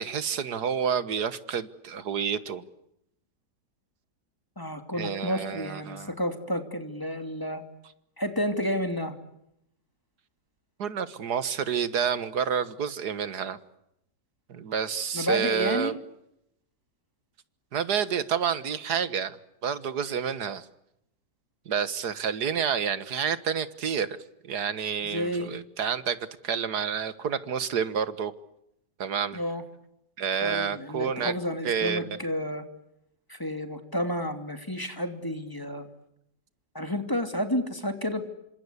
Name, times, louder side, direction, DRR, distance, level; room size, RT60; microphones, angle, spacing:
voice 1, 0.0-2.7 4.9-6.1 10.8-13.6 14.5-16.0 17.7-19.4 19.6-20.7 21.7-24.1 24.4-26.2 26.4-28.3 29.0-29.4 30.2-31.3 31.7-32.2, right 7 dB, 65° right, 1.9 m, -29 dB
voice 2, 4.6-7.6 8.2-9.2 15.1-16.0 25.0-25.5 29.3-29.6 30.4-32.6 33.3-35.9 36.7-38.3, equal, 10° left, 2.8 m, -30 dB
27.5 x 26.0 x 8.3 m
omnidirectional pair, 1.9 m